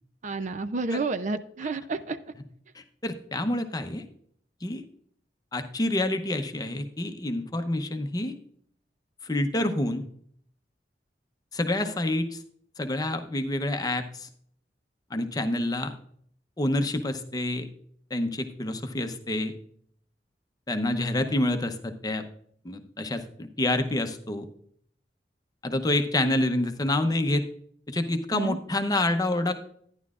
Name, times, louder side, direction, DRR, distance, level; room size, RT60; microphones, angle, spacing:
voice 1, 0.2-2.2 28.3-28.6, right 3 dB, 45° right, 11 dB, 0.5 m, -30 dB
voice 2, 3.0-4.0 4.6-4.8 5.5-8.3 9.2-10.0 11.5-12.4 12.8-14.3 15.1-15.9 16.6-17.7 18.1-19.5 20.7-22.2 22.6-24.4 25.6-27.4 27.9-29.5, left 1 dB, 20° left, 8 dB, 0.7 m, -27 dB
11.5 x 10.5 x 2.4 m, 0.64 s
head